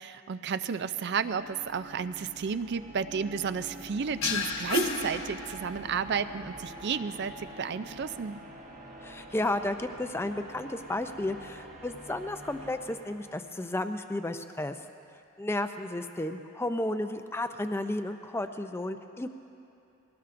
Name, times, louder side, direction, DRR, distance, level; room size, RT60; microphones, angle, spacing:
voice 1, 0.0-8.4, right 6 dB, 50° right, 12 dB, 0.4 m, -32 dB
sound 1, 0.8-13.9, right 1 dB, 35° right, 1.4 m, -47 dB
sound 2, 4.2-6.0, left 4 dB, 60° left, 1.2 m, -31 dB
voice 2, 9.0-14.8 15.4-19.3, left 1 dB, 10° left, 8 dB, 0.4 m, -33 dB
22.0 x 18.5 x 2.6 m, 2.8 s
head